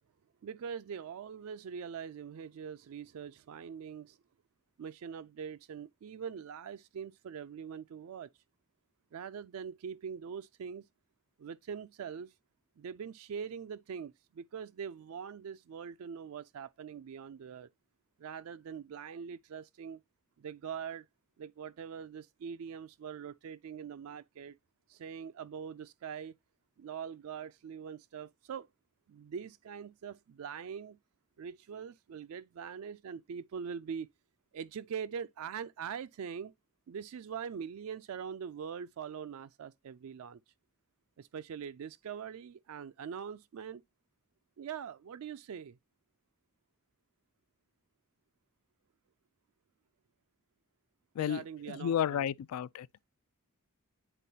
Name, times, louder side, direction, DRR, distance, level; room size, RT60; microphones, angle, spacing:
voice 1, 0.4-4.2 4.8-8.3 9.1-10.8 11.4-12.3 12.8-17.7 18.2-20.0 20.4-21.1 21.4-24.6 24.9-26.3 26.8-28.7 29.1-31.0 31.4-34.1 34.5-36.5 36.9-40.4 41.2-43.8 44.6-45.8 51.2-52.3, right 7 dB, 70° right, 0.3 m, -43 dB
voice 2, 51.2-52.9, left 9 dB, 80° left, 0.3 m, -32 dB
10.0 x 3.8 x 2.7 m
head